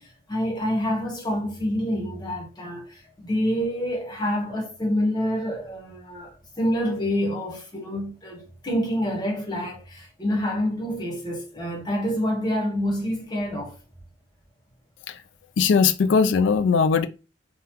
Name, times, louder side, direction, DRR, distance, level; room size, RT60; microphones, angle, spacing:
voice 1, 0.0-13.8, equal, 20° left, 1.0 m, -27 dB
voice 2, 15.6-17.1, left 5 dB, 60° left, 0.3 m, -19 dB
3.5 x 2.3 x 2.9 m
head